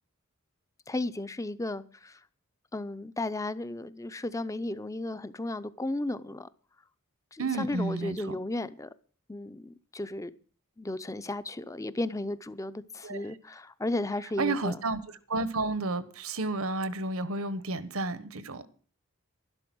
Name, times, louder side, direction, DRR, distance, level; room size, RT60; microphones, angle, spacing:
voice 1, 0.9-2.2 2.7-6.5 7.3-8.9 9.3-10.3 10.8-14.8, left 2 dB, 15° left, 0.5 m, -34 dB
voice 2, 7.4-8.3 13.0-13.3 14.4-18.7, right 2 dB, 80° right, 1.2 m, -31 dB
12.0 x 11.5 x 6.1 m
head